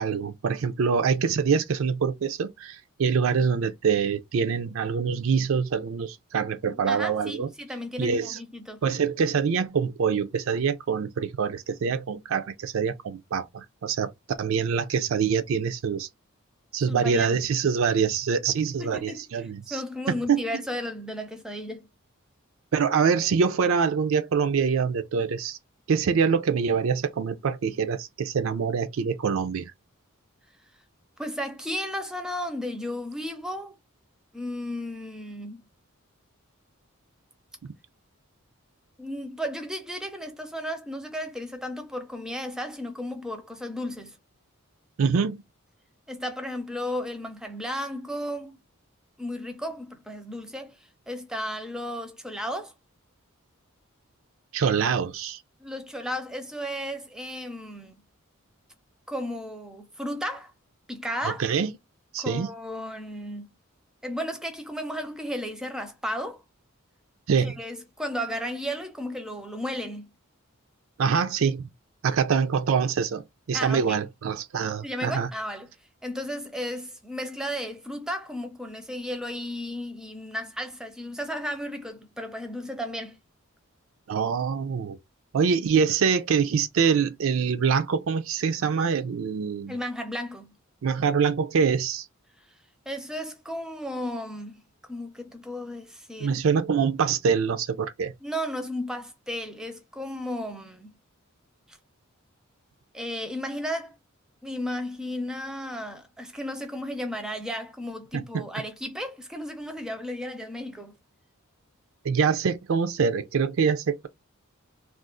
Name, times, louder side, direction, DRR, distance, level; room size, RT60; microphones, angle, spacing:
voice 1, 0.0-7.5 8.0-8.4 8.8-14.1 14.4-16.1 16.7-19.8 20.3-20.4 22.7-25.6 25.9-29.7 45.0-45.4 54.5-55.4 61.2-61.7 62.1-62.5 67.3-67.5 71.0-71.7 72.0-75.3 84.1-85.0 85.3-89.8 90.8-92.1 96.2-98.1 108.1-108.4 112.0-114.1, right 6 dB, 65° right, 0.4 m, -25 dB
voice 2, 6.6-8.8 16.9-17.4 18.8-19.2 19.7-21.9 31.2-33.8 34.3-35.6 39.0-44.2 46.1-48.6 49.2-50.8 51.1-52.7 55.6-58.0 59.1-60.5 60.9-61.4 62.2-63.5 64.0-66.4 67.4-70.1 73.5-74.0 74.8-75.7 76.0-83.2 89.7-90.5 92.9-94.6 94.9-96.4 98.2-101.0 101.7-101.8 102.9-104.0 104.4-111.0, equal, 5° right, 0.5 m, -34 dB
2.5 x 2.4 x 3.6 m
head